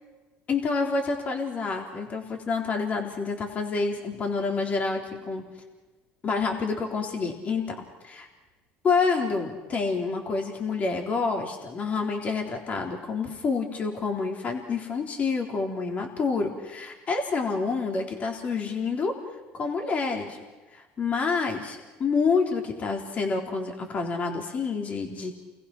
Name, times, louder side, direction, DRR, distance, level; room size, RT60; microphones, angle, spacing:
voice 1, 0.5-5.4 6.2-7.8 8.0-8.3 8.8-19.1 19.5-20.4 20.7-25.3, left 4 dB, 40° left, 3 dB, 3.8 m, -28 dB
30.0 x 20.5 x 6.1 m, 1.2 s
supercardioid pair, 105°, 4 cm